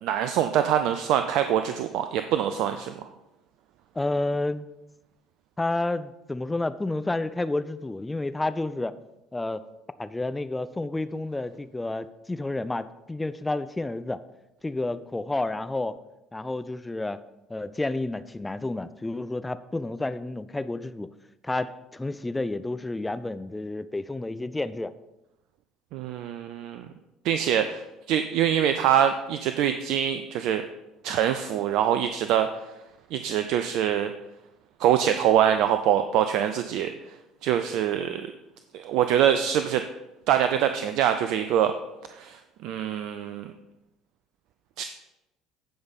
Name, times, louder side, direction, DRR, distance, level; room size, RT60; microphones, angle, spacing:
voice 1, 0.0-2.9 25.9-26.9 27.2-27.8 28.1-30.6 31.0-32.5 33.1-34.1 34.8-36.9 37.4-38.3 38.7-39.8 40.3-41.7 42.1-43.5 44.8-44.9, right 10 dB, 65° right, 8 dB, 0.5 m, -24 dB
voice 2, 4.0-4.6 5.6-8.9 9.3-9.6 10.0-14.2 14.6-16.0 16.3-17.2 17.5-21.1 21.4-24.9, left 2 dB, 15° left, 13 dB, 0.6 m, -30 dB
14.5 x 5.2 x 4.2 m, 0.93 s
hypercardioid pair, 60°, 0 cm